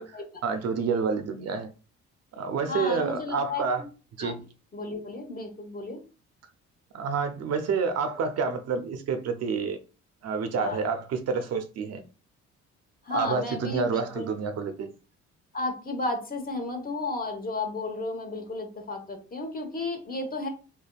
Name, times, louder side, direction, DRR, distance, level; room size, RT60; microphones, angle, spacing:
voice 1, 0.0-1.7 2.3-3.8 4.2-4.4 6.9-9.8 10.2-12.0 13.1-14.9, right 5 dB, 60° right, 0.5 m, -28 dB
voice 2, 2.7-3.9 4.2-4.4 4.7-6.0 10.6-10.8 13.0-14.3 15.5-20.5, left 3 dB, 30° left, 1.0 m, -33 dB
3.4 x 2.3 x 2.3 m
cardioid pair, 85°, 30 cm